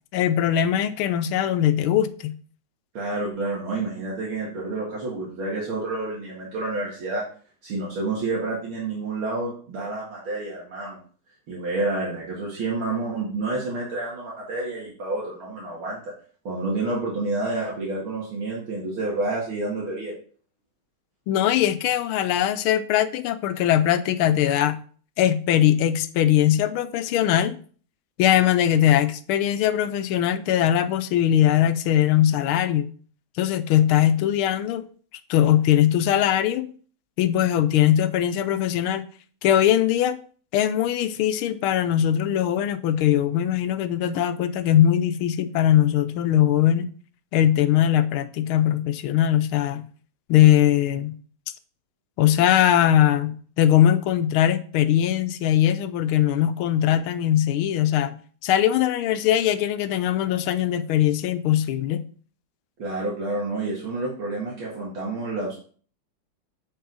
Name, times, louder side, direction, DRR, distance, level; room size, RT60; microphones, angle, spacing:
voice 1, 0.1-2.4 21.3-24.8 25.2-27.6 28.2-32.9 33.4-34.8 35.3-36.7 37.2-39.1 39.4-40.2 40.5-46.9 47.3-49.9 50.3-51.2 52.2-58.2 58.4-62.1, left 11 dB, 85° left, 1.5 m, -21 dB
voice 2, 2.9-7.2 7.6-11.0 11.5-16.1 16.4-20.1 62.8-65.6, right 2 dB, 70° right, 2.7 m, -29 dB
9.3 x 4.7 x 4.0 m
omnidirectional pair, 2.3 m